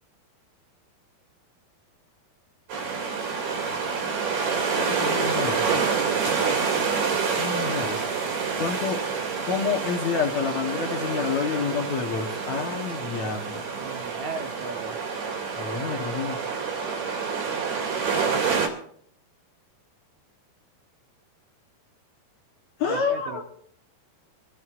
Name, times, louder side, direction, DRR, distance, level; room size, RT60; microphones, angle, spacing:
sound 1, 2.7-18.7, right 5 dB, 90° right, 4.4 m, -27 dB
voice 1, 4.8-5.7 6.2-6.3 7.4-8.1 8.4-9.0 9.5-13.6 15.6-16.4 22.8-23.4, left 6 dB, 60° left, 1 dB, 2.0 m, -28 dB
voice 2, 13.7-15.0 22.9-23.4, right 4 dB, 60° right, 3 dB, 2.2 m, -36 dB
26.5 x 14.0 x 2.5 m, 0.63 s
omnidirectional pair, 4.4 m